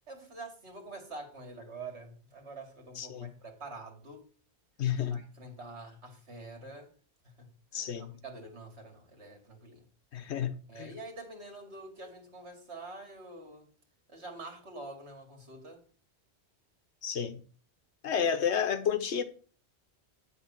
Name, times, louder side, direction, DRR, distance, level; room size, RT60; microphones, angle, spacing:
voice 1, 0.1-4.3 5.1-6.9 7.2-7.5 7.7-9.8 10.7-13.7 14.1-15.8, right 2 dB, 70° right, 2.5 m, -46 dB
voice 2, 3.0-3.3 4.8-5.2 7.7-8.1 10.1-10.9 17.0-17.4 18.0-19.2, left 8 dB, 80° left, 1.2 m, -31 dB
10.0 x 3.7 x 7.3 m
omnidirectional pair, 1.1 m